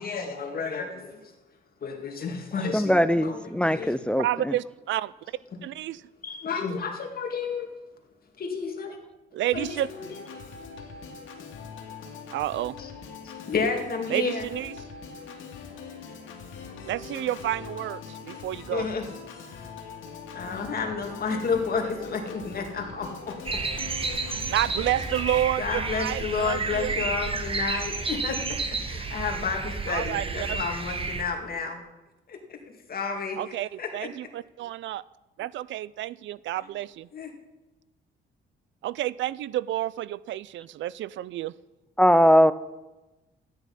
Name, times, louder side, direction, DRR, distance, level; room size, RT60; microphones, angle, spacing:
voice 1, 0.0-1.3 1.8-2.9 3.2-3.9 6.2-7.7 8.4-9.0 9.5-10.2 12.8-12.9 13.2-14.5 18.2-19.0 19.4-19.7 20.3-23.4 25.6-31.8 32.3-32.6 32.9-34.1 37.1-37.3, left 5 dB, 50° left, 2.2 m, -31 dB
voice 2, 2.7-4.5 42.0-42.5, equal, 5° left, 0.5 m, -20 dB
voice 3, 4.2-5.1 5.6-6.0 9.3-9.9 12.3-12.8 14.1-14.7 16.9-18.9 24.5-26.9 29.9-30.6 33.4-35.0 35.4-37.1 38.8-41.5, right 13 dB, 70° right, 0.5 m, -30 dB
Organ, 9.5-25.5, left 5 dB, 80° left, 2.2 m, -42 dB
sound 1, 23.5-31.2, right 4 dB, 25° right, 1.4 m, -31 dB
12.5 x 9.8 x 5.5 m
cardioid pair, 90°, 20 cm